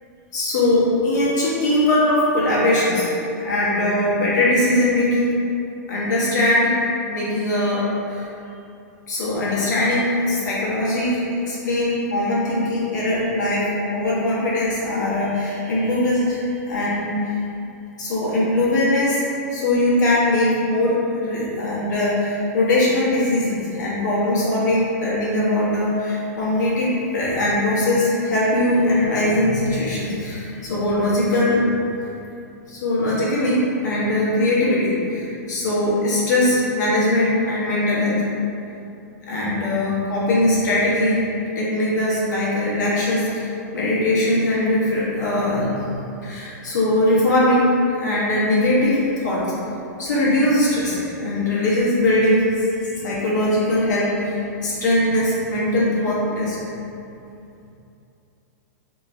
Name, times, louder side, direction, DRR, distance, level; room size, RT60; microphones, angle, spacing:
voice 1, 0.3-5.4 5.9-6.8 7.1-8.2 9.1-17.2 18.0-31.6 32.7-38.2 39.3-41.2 41.5-49.5 50.0-52.5 52.7-56.6, left 1 dB, 90° left, -8 dB, 1.1 m, -21 dB
3.0 x 2.9 x 2.6 m, 2.7 s
supercardioid pair, 175°, 9 cm